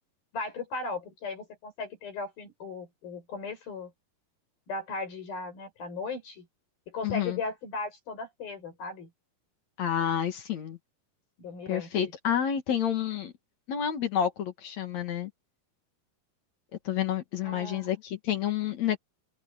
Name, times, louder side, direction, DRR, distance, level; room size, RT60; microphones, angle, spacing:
voice 1, 0.3-3.9 4.7-6.5 6.9-9.1 11.4-12.1 17.4-17.9, left 3 dB, 85° left, 8.7 m, -37 dB
voice 2, 7.0-7.4 9.8-10.8 11.7-13.3 13.7-15.3 16.9-19.0, left 9 dB, 55° left, 2.8 m, -29 dB
open air
omnidirectional pair, 4.0 m